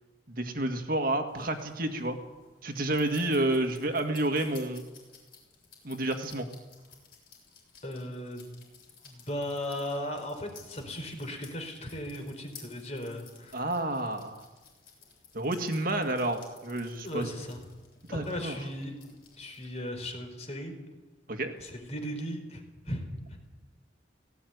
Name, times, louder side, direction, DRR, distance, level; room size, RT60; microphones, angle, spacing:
voice 1, 0.3-2.2 2.6-4.8 5.8-6.5 13.5-14.4 15.3-17.3 18.1-18.6 21.3-21.5, right 1 dB, 50° right, 6 dB, 2.0 m, -30 dB
sound 1, 1.3-19.9, left 6 dB, 50° left, 7.6 m, -56 dB
voice 2, 7.8-8.5 9.0-13.6 17.0-17.6 18.1-19.0 19.4-20.7 21.6-23.0, left 1 dB, 35° left, 4 dB, 4.5 m, -37 dB
18.5 x 16.5 x 9.5 m, 1.2 s
head